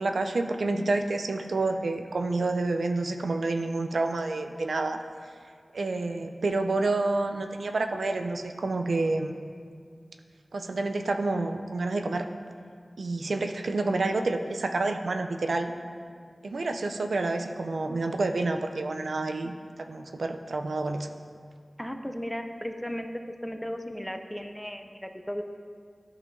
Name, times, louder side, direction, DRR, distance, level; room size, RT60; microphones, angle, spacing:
voice 1, 0.0-5.0 5.7-9.4 10.5-12.2 13.0-15.7 16.4-19.5 19.9-21.1, right 2 dB, 85° right, 5 dB, 0.4 m, -28 dB
voice 2, 21.8-23.1 23.4-25.4, equal, 10° left, 6 dB, 0.5 m, -35 dB
11.5 x 5.6 x 2.6 m, 2.1 s
wide cardioid pair, 55°, 0 cm